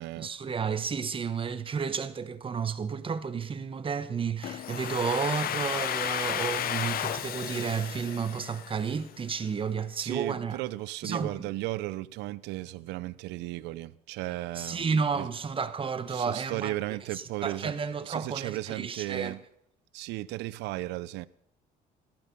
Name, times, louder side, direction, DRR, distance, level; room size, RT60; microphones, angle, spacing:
voice 1, 0.2-10.6 11.0-11.5 14.5-16.7 17.1-19.4, right 6 dB, 30° right, 1.3 m, -32 dB
Domestic sounds home sounds, 4.4-9.2, left 10 dB, 60° left, 0.9 m, -33 dB
voice 2, 10.0-15.3 16.1-17.7 18.0-19.4 19.9-21.3, right 17 dB, 90° right, 0.7 m, -35 dB
17.5 x 14.0 x 5.5 m
cardioid pair, 110°, 17 cm